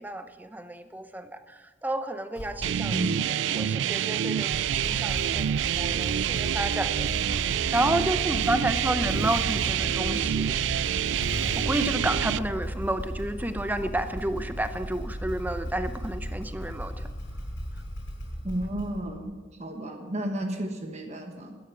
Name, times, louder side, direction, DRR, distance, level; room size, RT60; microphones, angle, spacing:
voice 1, 0.0-3.0 3.5-10.6 11.6-17.1, right 1 dB, 10° right, 9 dB, 0.6 m, -31 dB
Motorcycle / Engine starting, 2.3-3.0 4.4-19.3, equal, 90° left, 4.7 m, -35 dB
sound 1, 2.6-12.4, right 10 dB, 75° right, 0.3 m, -27 dB
voice 2, 2.9-3.7 18.4-21.6, right 1 dB, 35° right, 3 dB, 1.2 m, -33 dB
12.5 x 10.0 x 6.0 m, 1.3 s
head